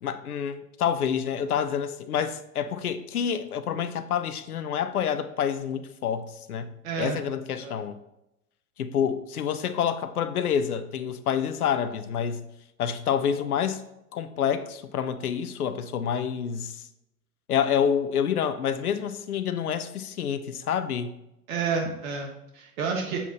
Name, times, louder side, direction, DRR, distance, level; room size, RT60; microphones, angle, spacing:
voice 1, 0.0-6.7 7.0-7.9 8.8-12.4 12.8-13.8 14.1-16.8 17.5-21.1, left 8 dB, 80° left, 0.8 m, -28 dB
voice 2, 6.8-7.2 7.6-7.8 21.5-23.2, right 5 dB, 65° right, 1.4 m, -30 dB
8.1 x 7.1 x 2.9 m
hypercardioid pair, 90°, 44 cm